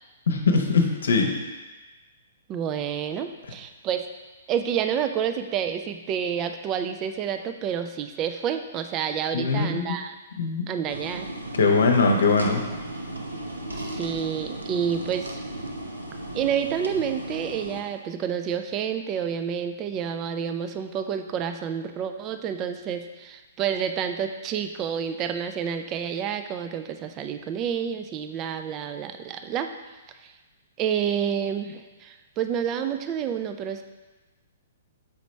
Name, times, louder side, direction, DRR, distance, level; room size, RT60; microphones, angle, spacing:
voice 1, 0.3-1.3 9.3-9.8 10.4-10.6 11.6-12.6, left 4 dB, 65° left, 3 dB, 0.8 m, -21 dB
voice 2, 2.5-4.1 4.5-10.1 10.7-11.3 13.7-15.4 16.3-29.7 30.8-33.8, right 8 dB, 25° right, 8 dB, 0.4 m, -29 dB
sound 1, 10.9-17.8, right 1 dB, 75° right, 0.7 m, -35 dB
6.9 x 5.0 x 3.2 m, 1.2 s
figure-of-eight pair, 115°, 0 cm